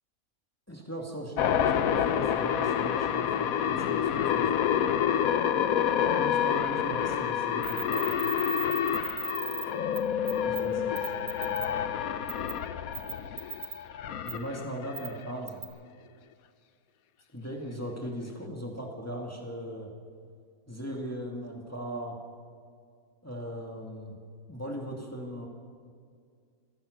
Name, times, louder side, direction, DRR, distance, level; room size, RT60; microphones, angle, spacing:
voice 1, 0.7-4.7 6.1-8.1 10.4-11.1 14.2-15.7 17.3-19.9 20.7-22.2 23.2-24.2 24.5-25.5, equal, 10° left, 0 dB, 2.3 m, -38 dB
sound 1, 1.4-15.3, left 9 dB, 70° left, 1.2 m, -28 dB
sound 2, 7.6-9.6 9.9-10.0 10.3-10.6 11.0-11.7 12.3-12.5 12.9-13.7 14.3-14.4 14.9-15.1 15.5-15.6, right 6 dB, 60° right, 1.8 m, -36 dB
26.5 x 16.5 x 6.6 m, 2.2 s
omnidirectional pair, 1.6 m